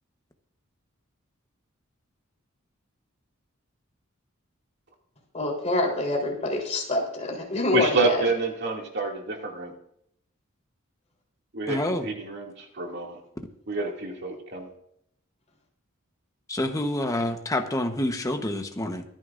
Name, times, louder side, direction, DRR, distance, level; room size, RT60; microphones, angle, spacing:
voice 1, 5.3-8.2, left 1 dB, 35° left, -1 dB, 3.7 m, -26 dB
voice 2, 7.7-9.7 11.5-13.2 13.7-14.7, right 3 dB, 55° right, 0 dB, 2.4 m, -28 dB
voice 3, 11.7-12.1 16.5-19.0, left 1 dB, 15° left, 5 dB, 1.1 m, -27 dB
24.5 x 9.7 x 2.6 m, 0.72 s
head